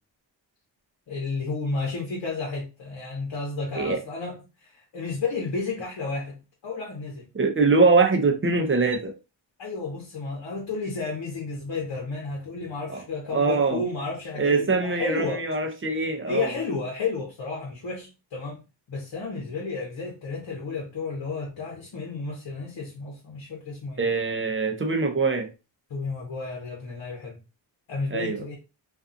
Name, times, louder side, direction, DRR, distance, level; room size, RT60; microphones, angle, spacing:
voice 1, 1.1-7.2 9.6-15.4 16.3-18.6 18.9-24.0 25.9-27.4 27.9-28.6, left 4 dB, 65° left, 0.9 m, -32 dB
voice 2, 7.3-9.1 12.9-13.0 13.3-13.8 14.4-16.5 24.0-25.5 28.1-28.4, right 4 dB, 25° right, 0.6 m, -23 dB
2.5 x 2.3 x 2.6 m
cardioid pair, 65°, 46 cm